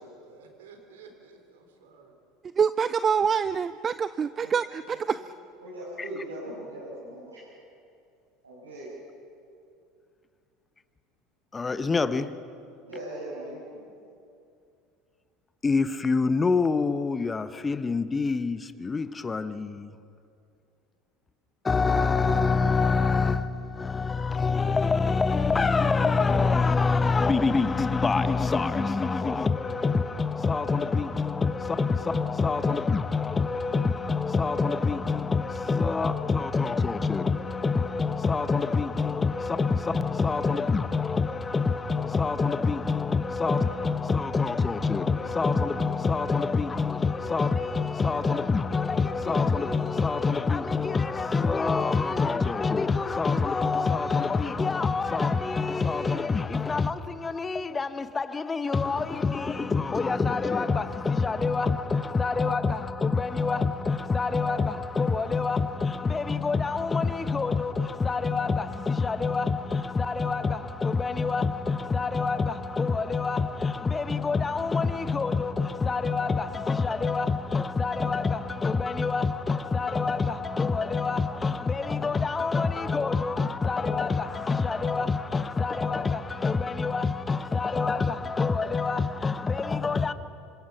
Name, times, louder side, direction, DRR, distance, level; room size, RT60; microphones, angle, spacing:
voice 1, 0.0-2.2, right 4 dB, 70° right, 3.9 m, -52 dB
voice 2, 2.6-4.8, right 6 dB, 30° right, 0.5 m, -25 dB
voice 3, 4.9-5.2 5.6-7.5 8.4-8.9 12.8-13.9, right 1 dB, 90° right, 6.2 m, -40 dB
voice 4, 11.5-12.3 15.6-20.0 21.6-90.1, left 4 dB, 20° left, 1.1 m, -26 dB
27.5 x 25.5 x 6.0 m
figure-of-eight pair, 75°, 0 cm